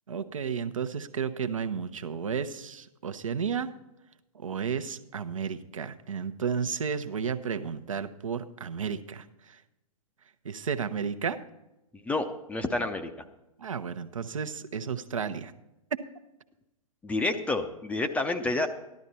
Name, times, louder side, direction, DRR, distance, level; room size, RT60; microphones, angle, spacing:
voice 1, 0.1-3.7 4.3-9.2 10.4-11.4 13.6-15.5 15.9-16.0, right 6 dB, 60° right, 10 dB, 0.9 m, -32 dB
voice 2, 12.1-13.1 17.0-18.7, left 2 dB, 5° left, 7 dB, 0.7 m, -29 dB
14.0 x 12.0 x 4.2 m, 0.92 s
figure-of-eight pair, 115°, 19 cm